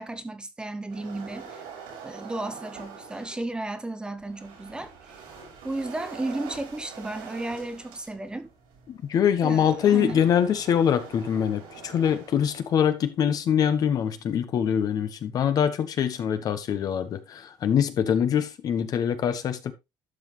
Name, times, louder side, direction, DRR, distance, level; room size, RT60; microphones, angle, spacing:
voice 1, 0.0-1.6 2.0-4.9 5.6-8.5 9.4-10.2, right 2 dB, 10° right, 1.0 m, -33 dB
sound 1, 0.9-3.5 4.2-13.0, right 6 dB, 85° right, 6.5 m, -45 dB
voice 2, 8.9-19.7, left 8 dB, 50° left, 1.2 m, -24 dB
11.5 x 5.9 x 3.3 m
cardioid pair, 120°, 8 cm